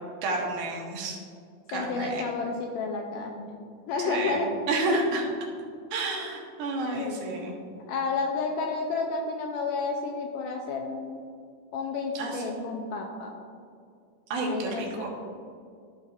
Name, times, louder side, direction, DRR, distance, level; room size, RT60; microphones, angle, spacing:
voice 1, 0.2-1.2 1.7-2.2 4.1-5.2 5.9-7.6 12.1-12.6 14.3-15.1, right 2 dB, 75° right, -1 dB, 2.9 m, -30 dB
voice 2, 1.7-3.6 3.9-4.5 6.9-7.2 7.9-11.3 11.7-13.3 14.5-15.1, left 4 dB, 80° left, 2 dB, 2.0 m, -31 dB
13.5 x 5.7 x 2.5 m, 2.3 s
omnidirectional pair, 4.2 m